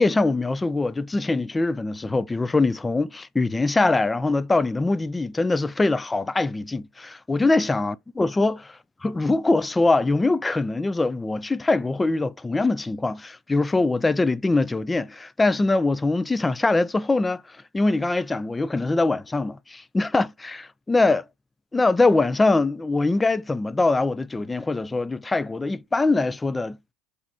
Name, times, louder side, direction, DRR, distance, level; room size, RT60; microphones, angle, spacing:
voice 1, 0.0-8.6 9.0-21.2 21.7-26.8, left 3 dB, 15° left, 0.4 m, -23 dB
4.8 x 3.2 x 3.4 m
hypercardioid pair, 75°, 0 cm